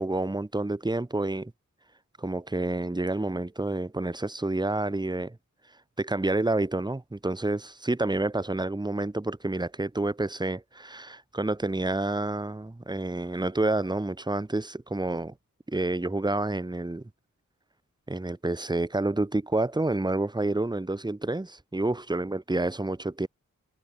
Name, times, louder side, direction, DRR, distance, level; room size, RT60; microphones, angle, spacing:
voice 1, 0.0-1.5 2.2-5.4 6.0-15.3 15.7-17.0 18.1-23.3, right 2 dB, 15° right, 1.0 m, -29 dB
cardioid pair, 45°, 32 cm